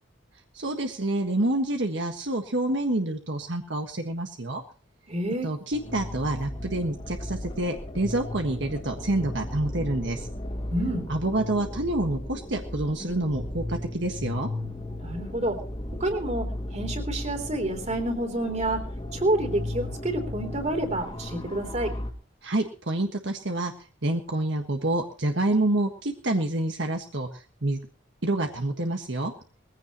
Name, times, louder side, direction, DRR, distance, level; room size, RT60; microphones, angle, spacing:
voice 1, 0.5-4.6 5.4-10.3 11.1-14.5 22.4-23.7 24.0-27.8 28.2-29.3, right 1 dB, 65° right, 4 dB, 1.6 m, -27 dB
voice 2, 5.1-5.5 10.7-11.1 15.0-15.6 15.9-18.8 19.1-21.9, right 1 dB, 35° right, 5 dB, 3.3 m, -28 dB
sound 1, 5.7-22.1, left 1 dB, 30° left, 2.2 m, -35 dB
21.0 x 16.0 x 3.0 m, 0.36 s
head